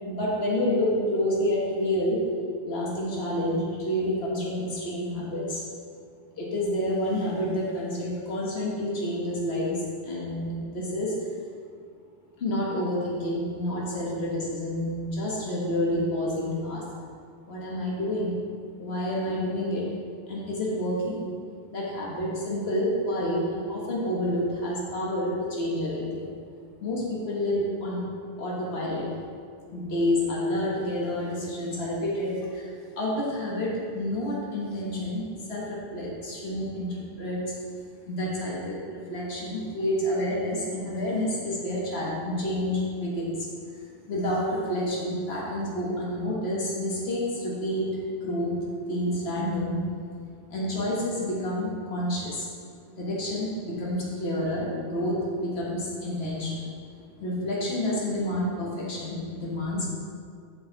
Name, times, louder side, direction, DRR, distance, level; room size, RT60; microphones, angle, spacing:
voice 1, 0.0-2.2 2.6-5.6 6.4-9.8 10.0-11.1 12.4-16.8 17.5-18.4 18.8-19.8 20.3-21.2 21.7-26.3 26.8-28.0 28.4-29.1 29.7-32.7 33.0-37.5 38.1-43.8 44.1-48.5 48.9-49.8 50.5-52.5 52.9-56.6 57.2-60.0, left 1 dB, 75° left, -5 dB, 1.6 m, -29 dB
7.5 x 6.5 x 3.9 m, 2.1 s
omnidirectional pair, 1.1 m